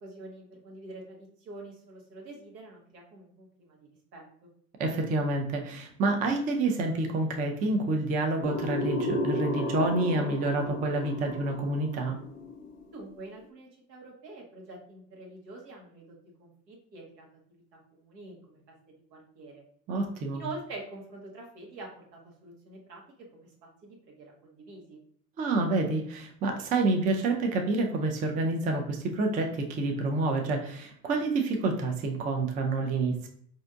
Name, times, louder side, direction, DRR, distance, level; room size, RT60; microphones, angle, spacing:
voice 1, 0.0-3.8 4.1-4.2 12.9-17.6 18.0-18.6 19.1-19.6 20.3-23.0 23.3-25.0, right 2 dB, 80° right, -1 dB, 1.2 m, -46 dB
voice 2, 4.8-12.2 19.9-20.4 25.4-33.3, right 2 dB, 20° right, 3 dB, 0.3 m, -28 dB
sound 1, 8.4-13.1, left 1 dB, 35° left, 0.8 m, -33 dB
4.2 x 2.6 x 2.4 m, 0.63 s
hypercardioid pair, 80°, 49 cm